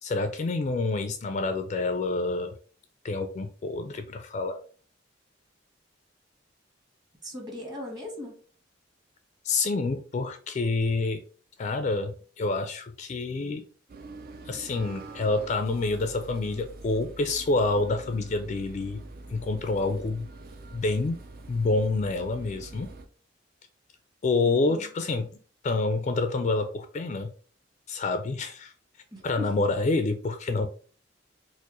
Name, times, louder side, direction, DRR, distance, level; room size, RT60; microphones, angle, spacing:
voice 1, 0.0-2.6 3.0-4.6 9.4-11.2 11.6-13.6 14.5-19.0 19.3-20.3 20.7-21.2 21.5-22.9 24.2-25.3 25.6-27.3 27.9-28.7 29.2-30.7, left 3 dB, 40° left, 8 dB, 0.3 m, -27 dB
voice 2, 7.2-8.4 24.4-24.9 29.1-29.5, left 1 dB, 25° right, 0 dB, 1.2 m, -38 dB
sound 1, 13.9-23.1, right 2 dB, 50° right, 0.4 m, -45 dB
Acoustic guitar, 14.7-18.3, right 4 dB, 65° right, 1.3 m, -51 dB
4.4 x 2.0 x 3.0 m, 0.40 s
head